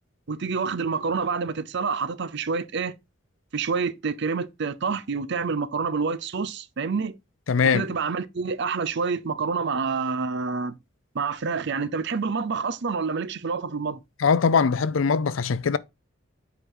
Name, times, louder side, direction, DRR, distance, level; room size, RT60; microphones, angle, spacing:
voice 1, 0.3-2.9 3.5-7.1 7.6-10.7 11.1-14.0, right 5 dB, 60° right, 0.6 m, -27 dB
voice 2, 7.5-7.9 14.2-15.8, left 5 dB, 70° left, 0.5 m, -21 dB
7.9 x 4.7 x 3.7 m
head